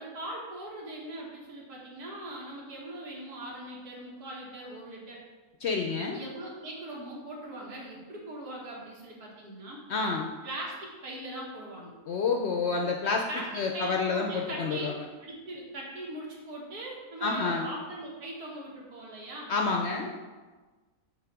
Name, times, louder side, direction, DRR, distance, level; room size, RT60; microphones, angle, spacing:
voice 1, 0.0-5.2 6.1-9.8 10.4-11.9 13.3-14.9 15.2-19.5 20.0-20.1, right 1 dB, 80° right, -3 dB, 2.0 m, -40 dB
voice 2, 5.6-6.2 9.9-10.3 12.1-13.3 13.5-14.9 17.2-17.7 19.5-20.1, left 4 dB, 65° left, 2 dB, 0.6 m, -28 dB
7.1 x 3.0 x 5.9 m, 1.3 s
omnidirectional pair, 1.6 m